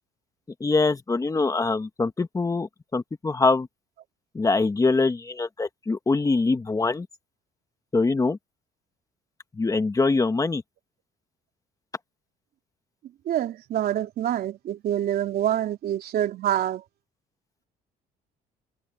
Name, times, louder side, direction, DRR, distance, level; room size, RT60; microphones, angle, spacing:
voice 1, 0.6-3.7 4.3-7.1 7.9-8.4 9.6-10.6, left 3 dB, 20° left, 2.0 m, -23 dB
voice 2, 13.3-16.8, right 11 dB, 65° right, 3.3 m, -26 dB
cardioid pair, 110°, 17 cm